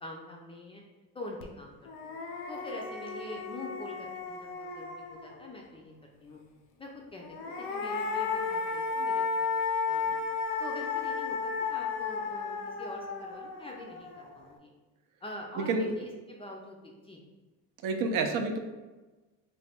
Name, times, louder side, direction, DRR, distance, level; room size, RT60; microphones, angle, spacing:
voice 1, 0.0-0.8 1.1-2.1 2.5-6.4 6.8-9.3 9.9-10.2 10.6-14.7 15.2-17.2, left 1 dB, 15° left, -1 dB, 0.4 m, -44 dB
sound 1, 1.4-1.5 1.9-5.5 7.2-14.5, left 4 dB, 80° left, 0.6 m, -34 dB
voice 2, 15.6-15.9 17.8-18.6, right 3 dB, 65° right, 5 dB, 0.6 m, -29 dB
3.2 x 2.3 x 4.2 m, 1.2 s
cardioid pair, 115°, 35 cm